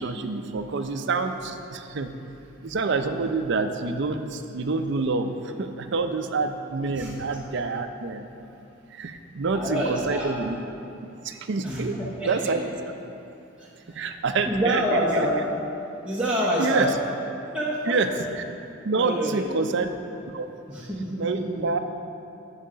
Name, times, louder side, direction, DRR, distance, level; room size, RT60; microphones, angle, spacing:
voice 1, 0.0-2.1 2.6-8.3 8.9-10.6 11.2-12.0 12.2-12.6 13.9-15.3 16.6-16.9 17.9-18.1 18.3-18.4 18.8-19.9 20.3-20.5 21.2-21.8, right 4 dB, 60° right, 7 dB, 0.5 m, -27 dB
voice 2, 6.9-7.4 9.5-10.3 11.6-12.6 13.2-13.3 13.6-14.1 14.5-15.5 16.0-17.0 17.5-18.0 18.9-19.7 20.7-21.7, equal, 5° right, -8 dB, 0.8 m, -27 dB
10.0 x 4.9 x 5.6 m, 2.7 s
head